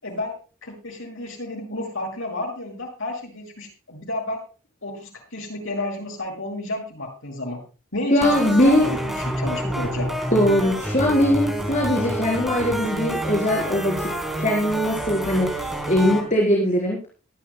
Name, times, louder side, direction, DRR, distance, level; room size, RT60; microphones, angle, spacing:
voice 1, 0.0-4.4 4.8-7.6 7.9-10.1, left 1 dB, 80° left, 1 dB, 6.8 m, -31 dB
voice 2, 8.1-8.9 10.3-13.9 14.4-17.0, equal, 35° left, -2 dB, 4.2 m, -20 dB
sound 1, 8.2-16.2, right 1 dB, ahead, 3.9 m, -28 dB
23.0 x 12.0 x 2.3 m, 0.35 s
head